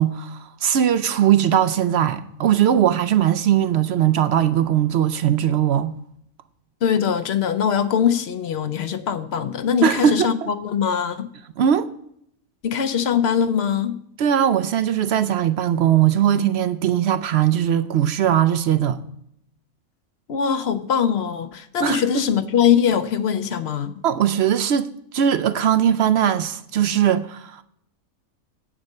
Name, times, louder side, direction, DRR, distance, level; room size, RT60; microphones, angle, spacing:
voice 1, 0.0-5.9 9.8-10.5 11.6-11.9 14.2-19.0 21.8-22.0 24.0-24.9 25.1-27.6, right 10 dB, 65° right, 0.6 m, -19 dB
voice 2, 6.8-11.3 12.6-14.0 20.3-23.9, left 8 dB, 55° left, 0.8 m, -22 dB
8.5 x 7.4 x 6.5 m
omnidirectional pair, 1.5 m